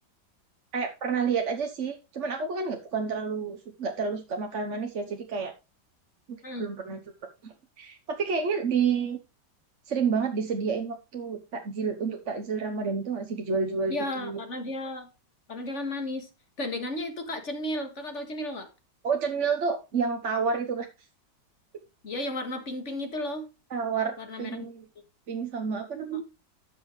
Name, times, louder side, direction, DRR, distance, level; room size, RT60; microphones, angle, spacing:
voice 1, 0.7-5.5 6.6-7.0 7.4-9.2 9.9-14.4 19.0-20.9 23.7-24.8 25.3-26.2, right 5 dB, 50° right, 4 dB, 1.3 m, -29 dB
voice 2, 13.9-15.1 15.5-16.3 16.6-18.7 22.0-23.5 24.2-24.7, left 1 dB, 45° left, 6 dB, 2.2 m, -33 dB
12.5 x 6.8 x 3.2 m, 0.28 s
omnidirectional pair, 1.8 m